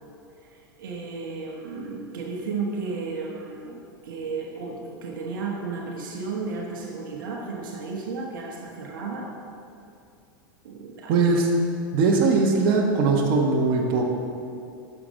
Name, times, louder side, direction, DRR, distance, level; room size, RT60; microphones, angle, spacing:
voice 1, 0.4-9.3 10.6-11.3, right 4 dB, 70° right, 0 dB, 1.3 m, -33 dB
voice 2, 11.1-11.5 11.9-14.0, right 4 dB, 50° right, 0 dB, 1.4 m, -20 dB
11.0 x 6.8 x 3.8 m, 2.6 s
hypercardioid pair, 95°, 11 cm